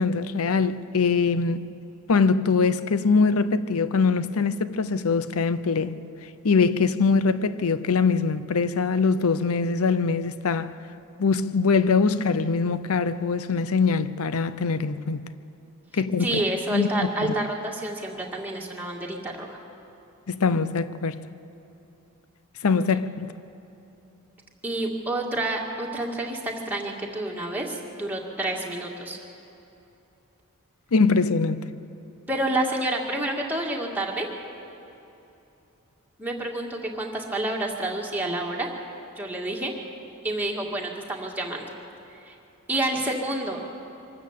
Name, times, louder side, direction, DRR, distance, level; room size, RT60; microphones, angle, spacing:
voice 1, 0.0-1.7 2.1-6.0 6.4-10.7 11.2-15.2 15.9-16.4 16.7-17.3 20.3-21.2 22.6-23.3 30.9-31.6, left 4 dB, 75° left, 0.7 m, -23 dB
voice 2, 16.2-19.6 24.6-29.2 32.3-34.3 36.2-38.7 39.2-39.7 40.2-41.7 42.2-42.4 42.7-43.6, right 1 dB, 10° right, 2.0 m, -29 dB
24.0 x 13.0 x 8.3 m
head